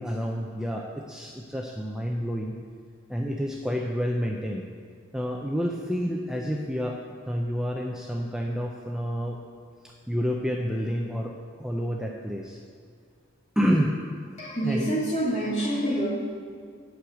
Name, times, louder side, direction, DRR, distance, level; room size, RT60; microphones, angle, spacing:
voice 1, 0.0-2.6 3.1-4.6 5.1-7.0 7.3-9.4 9.8-12.6 13.6-14.0 14.6-14.9, equal, 5° right, 0 dB, 0.5 m, -29 dB
voice 2, 14.4-16.1, right 1 dB, 35° left, -5 dB, 2.4 m, -27 dB
9.1 x 6.4 x 8.1 m, 2.1 s
head